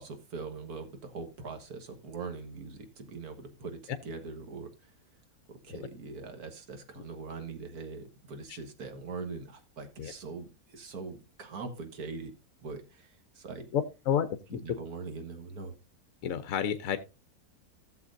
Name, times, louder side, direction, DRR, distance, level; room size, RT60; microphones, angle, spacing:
voice 1, 0.0-4.9 5.6-12.3 12.6-13.7 14.6-15.7, right 4 dB, 80° right, 6 dB, 1.9 m, -42 dB
voice 2, 13.7-14.6 16.2-17.0, left 9 dB, 65° left, 10 dB, 1.1 m, -31 dB
16.0 x 6.9 x 2.6 m, 0.28 s
omnidirectional pair, 1.6 m